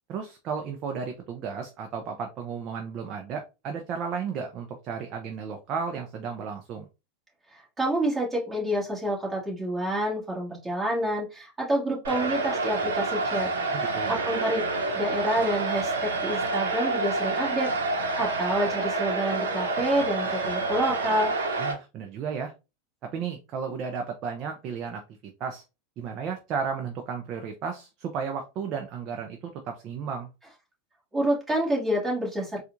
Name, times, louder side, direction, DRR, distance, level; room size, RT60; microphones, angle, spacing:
voice 1, 0.1-6.9 13.7-14.1 21.6-22.5 23.1-25.6 26.0-30.3, right 6 dB, 45° right, 4 dB, 0.6 m, -34 dB
voice 2, 7.5-13.5 14.1-14.6 14.9-17.7 18.2-21.3 31.1-32.6, right 1 dB, 15° right, -4 dB, 2.0 m, -28 dB
sound 1, 12.0-21.7, right 3 dB, 90° right, 0.9 m, -28 dB
4.1 x 2.4 x 2.6 m, 0.28 s
hypercardioid pair, 115°, 0 cm